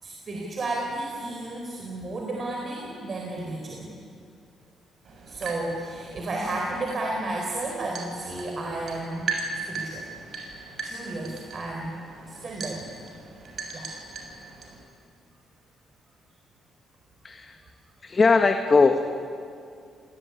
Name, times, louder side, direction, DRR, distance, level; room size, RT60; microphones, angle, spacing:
voice 1, 0.0-3.9 5.3-9.3 9.7-10.1 10.8-12.0 12.3-12.9 13.7-13.9, right 2 dB, 40° right, 0 dB, 4.7 m, -32 dB
sound 1, 5.0-14.8, right 4 dB, 60° right, 7.1 m, -38 dB
voice 2, 17.2-17.6 18.0-19.2, left 4 dB, 35° left, 5 dB, 1.5 m, -20 dB
28.5 x 20.0 x 9.8 m, 2.4 s
cardioid pair, 90°, 0 cm